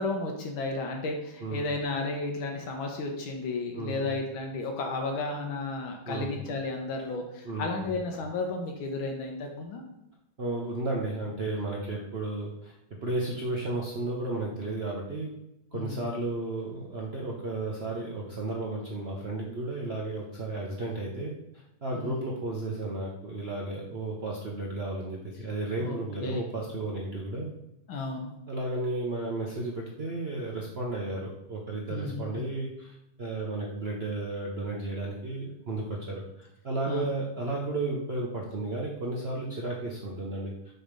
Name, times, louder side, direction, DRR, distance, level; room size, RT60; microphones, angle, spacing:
voice 1, 0.0-9.8 15.7-16.1 21.9-22.2 25.8-26.4 27.9-28.3 31.9-32.4 36.9-37.0, left 3 dB, 75° left, 2 dB, 1.5 m, -33 dB
voice 2, 3.7-4.1 6.1-6.3 7.4-7.9 10.4-12.8 13.0-15.3 15.7-27.5 28.5-40.7, right 2 dB, 70° right, -3 dB, 0.5 m, -33 dB
6.3 x 3.3 x 5.1 m, 0.84 s
omnidirectional pair, 2.3 m